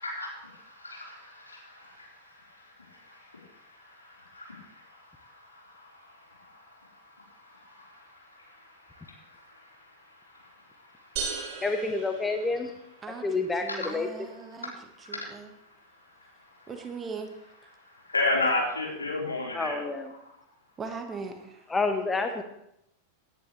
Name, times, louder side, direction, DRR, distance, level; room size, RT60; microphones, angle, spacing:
voice 1, 0.8-1.2 4.3-4.4 18.1-19.8, left 2 dB, 80° left, -3 dB, 4.3 m, -28 dB
sound 1, 11.2-13.0, right 5 dB, 45° right, 4.0 m, -36 dB
voice 2, 11.6-12.7 13.2-14.1 19.5-20.1 21.7-22.4, left 3 dB, 10° left, 6 dB, 1.1 m, -28 dB
voice 3, 13.0-14.7 15.1-15.5 16.7-17.7 20.8-21.7, right 5 dB, 20° right, 5 dB, 1.6 m, -40 dB
18.0 x 10.5 x 3.3 m, 0.77 s
figure-of-eight pair, 90°, 0 cm